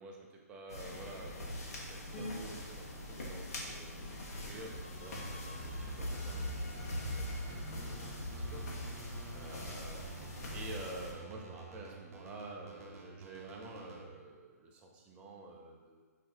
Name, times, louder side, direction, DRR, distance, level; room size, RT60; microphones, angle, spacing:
voice 1, 0.0-16.0, right 2 dB, 10° right, 0 dB, 0.4 m, -50 dB
sound 1, 0.7-11.1, left 1 dB, 70° left, 1.1 m, -42 dB
sound 2, 2.1-2.3 3.7-8.1, left 1 dB, 45° left, 0.9 m, -51 dB
sound 3, 5.3-14.0, right 3 dB, 60° right, 0.6 m, -49 dB
5.8 x 2.7 x 2.8 m, 1.5 s
hypercardioid pair, 155°, 9 cm